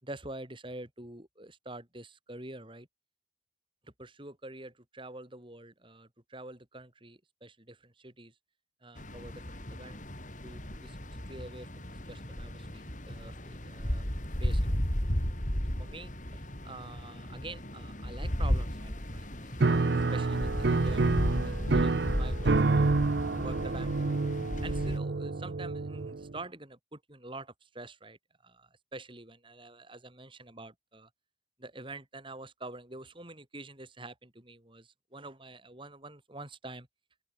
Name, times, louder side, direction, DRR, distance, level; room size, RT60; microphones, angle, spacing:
voice 1, 0.0-2.9 3.8-8.3 8.8-10.0 10.4-11.0 11.3-14.7 15.8-24.2 24.6-31.1 31.6-36.9, right 2 dB, 30° right, 5.6 m, -47 dB
sound 1, 9.0-25.0, equal, 45° left, 5.3 m, -34 dB
Piano, 19.6-26.4, right 3 dB, 65° right, 0.6 m, -28 dB
open air
head